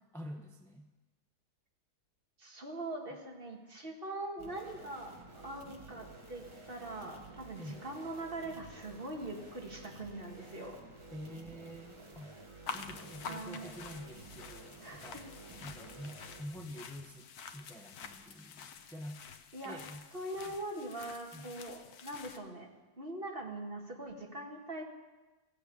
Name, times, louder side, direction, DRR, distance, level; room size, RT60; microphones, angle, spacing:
voice 1, 0.1-0.9 7.6-7.9 11.1-12.4 12.7-15.2 15.6-19.3 19.6-20.0 20.5-20.6 21.3-21.6, equal, ahead, 3 dB, 0.7 m, -47 dB
voice 2, 2.4-10.8 13.2-13.8 14.8-15.2 19.5-19.8 20.1-22.7 23.0-24.8, right 2 dB, 40° right, 1 dB, 2.0 m, -42 dB
sound 1, 4.4-16.4, right 2 dB, 20° right, 1.9 m, -52 dB
sound 2, 12.7-22.4, left 6 dB, 80° left, 1.4 m, -48 dB
16.0 x 8.4 x 8.4 m, 1.2 s
omnidirectional pair, 1.6 m